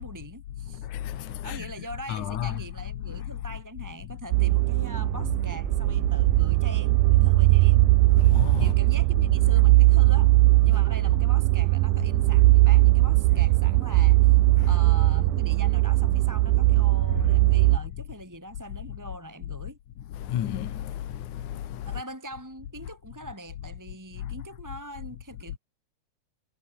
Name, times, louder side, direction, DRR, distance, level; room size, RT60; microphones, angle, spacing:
voice 1, 0.0-0.9 1.2-7.9 8.6-10.3 10.6-14.4 14.6-19.8 21.9-25.6, right 1 dB, 5° right, 3.7 m, -42 dB
voice 2, 0.7-1.7 2.1-2.6 3.1-3.3 8.2-8.7 10.7-10.8 14.6-14.8 20.1-22.0 24.2-24.3, left 11 dB, 75° left, 3.0 m, -32 dB
sound 1, 4.3-17.8, right 21 dB, 90° right, 2.1 m, -20 dB
omnidirectional pair, 3.6 m